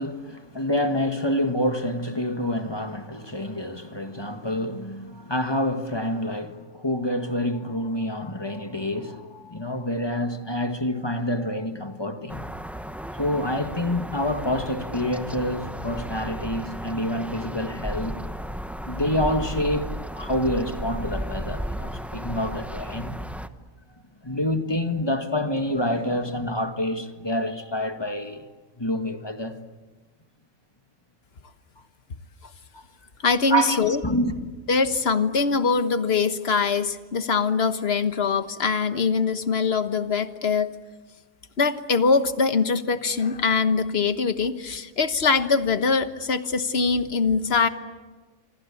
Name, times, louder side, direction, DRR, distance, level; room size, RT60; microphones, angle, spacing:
voice 1, 0.0-12.5 13.1-18.2 18.8-23.2 24.2-28.4 28.8-29.6 32.7-32.8 33.5-34.4, left 1 dB, 20° left, 1.7 m, -27 dB
sound 1, 12.3-23.5, equal, ahead, 0.8 m, -34 dB
voice 2, 33.2-34.0 34.7-40.7 41.6-47.7, left 5 dB, 50° left, 1.5 m, -23 dB
26.5 x 24.5 x 8.5 m
omnidirectional pair, 1.4 m